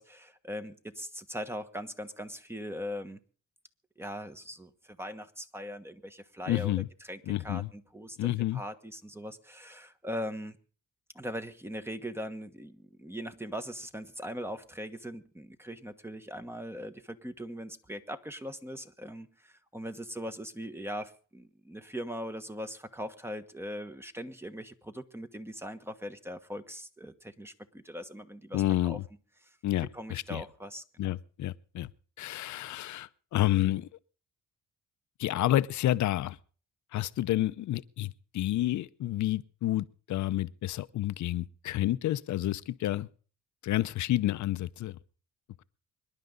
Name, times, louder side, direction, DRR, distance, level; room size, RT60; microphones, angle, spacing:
voice 1, 0.0-3.2 4.0-6.7 7.0-10.6 11.1-29.0 29.9-31.1, equal, 10° right, 1.3 m, -40 dB
voice 2, 6.5-6.9 7.3-7.7 8.2-8.6 28.5-29.0 29.6-30.4 31.0-31.9 32.2-33.9 35.2-36.4 36.9-43.1 43.6-45.0, left 14 dB, 70° left, 0.8 m, -29 dB
25.0 x 11.0 x 3.9 m
cardioid pair, 90°, 30 cm